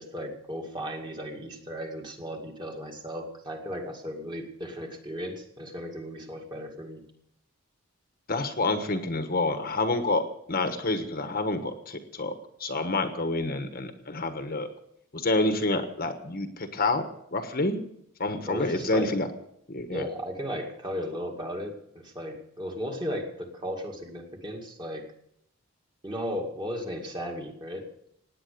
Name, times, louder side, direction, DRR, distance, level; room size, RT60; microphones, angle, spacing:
voice 1, 0.0-7.0 18.5-19.1 19.9-25.1 26.0-27.9, equal, 20° right, 2 dB, 2.2 m, -35 dB
voice 2, 8.3-10.2 10.5-12.3 12.6-14.7 15.1-17.8 18.2-19.3 19.7-20.0, left 2 dB, 40° left, 7 dB, 1.3 m, -28 dB
17.5 x 9.7 x 6.8 m, 0.73 s
head